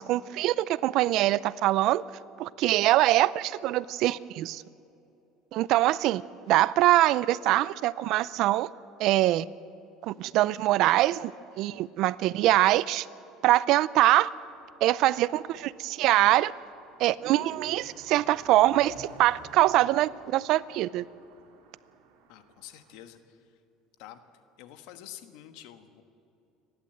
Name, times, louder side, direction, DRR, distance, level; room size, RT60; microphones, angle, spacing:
voice 1, 0.0-2.0 2.4-4.6 5.5-6.2 6.5-8.7 9.0-9.4 10.0-11.3 11.6-13.1 13.4-14.3 14.8-16.5 17.0-21.0, right 15 dB, 65° right, 19 dB, 0.5 m, -23 dB
Car passing by, 14.4-23.0, right 5 dB, 85° right, 3.0 m, -55 dB
voice 2, 22.3-23.6 24.0-24.2 24.6-26.0, left 12 dB, 75° left, 8 dB, 1.4 m, -48 dB
29.5 x 11.5 x 7.9 m, 2.7 s
supercardioid pair, 105°, 0 cm